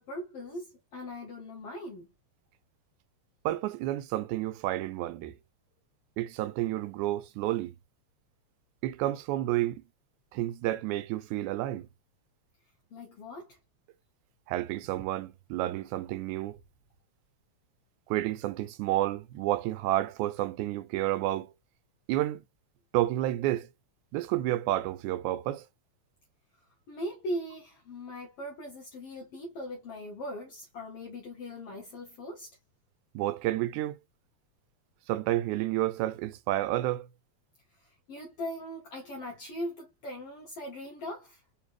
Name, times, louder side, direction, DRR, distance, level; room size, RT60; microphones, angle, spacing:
voice 1, 0.0-2.1 12.9-13.6 26.9-32.6 37.8-41.4, equal, 65° left, 1.7 m, -40 dB
voice 2, 3.5-5.4 6.2-7.7 8.8-9.8 10.3-11.9 14.5-16.6 18.1-21.5 22.1-22.4 22.9-23.7 24.1-25.7 33.2-34.0 35.1-37.1, right 15 dB, 85° right, 2.0 m, -30 dB
4.6 x 2.7 x 3.0 m
omnidirectional pair, 3.4 m